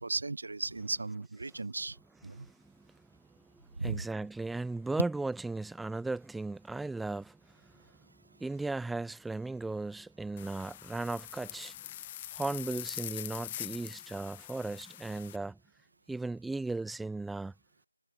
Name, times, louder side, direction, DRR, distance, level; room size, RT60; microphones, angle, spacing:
voice 1, 0.0-2.0 2.2-2.5 3.8-4.0, right 3 dB, 60° right, 1.1 m, -36 dB
voice 2, 2.3-3.1 3.4-3.5 3.8-7.9 8.4-11.8 12.3-15.6 16.1-17.5, right 3 dB, ahead, 0.6 m, -37 dB
sound 1, 10.4-15.4, left 13 dB, 20° left, 1.1 m, -43 dB
figure-of-eight pair, 165°, 0 cm